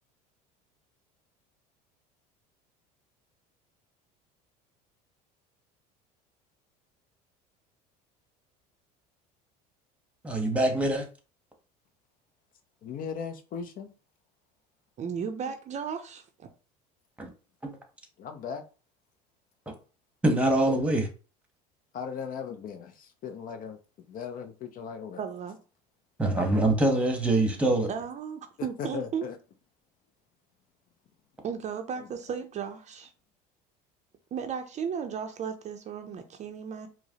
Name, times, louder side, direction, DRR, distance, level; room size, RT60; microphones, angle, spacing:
voice 1, 10.2-11.0 17.2-17.3 20.2-21.1 26.2-27.9, right 1 dB, 5° right, 1.1 m, -24 dB
voice 2, 12.8-13.9 18.2-18.6 21.9-23.8 24.1-25.2 28.8-29.4, left 6 dB, 45° left, 0.5 m, -37 dB
voice 3, 15.0-16.5 25.2-25.6 27.9-29.3 31.4-33.1 34.3-36.9, right 7 dB, 35° right, 0.5 m, -35 dB
4.7 x 2.0 x 2.8 m
supercardioid pair, 95°, 20 cm